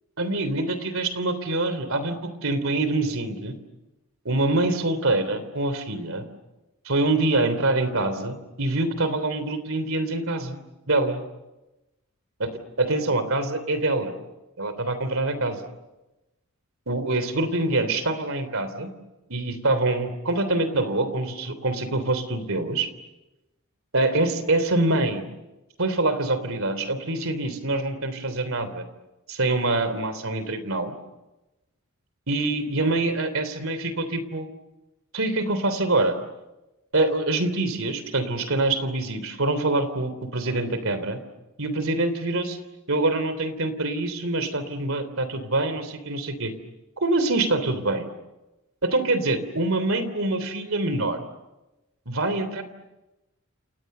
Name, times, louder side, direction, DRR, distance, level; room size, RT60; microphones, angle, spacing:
voice 1, 0.2-3.5 4.2-6.2 6.8-10.6 10.9-11.2 12.4-12.5 12.8-14.1 14.6-15.6 16.9-18.9 19.3-22.9 23.9-25.3 25.8-28.8 29.3-30.9 32.3-34.5 35.1-36.1 36.9-41.2 41.6-42.6 42.9-46.5 47.0-48.1 48.8-51.2 52.0-52.6, right 2 dB, 70° right, 12 dB, 3.4 m, -25 dB
29.5 x 29.0 x 6.8 m, 1.0 s
head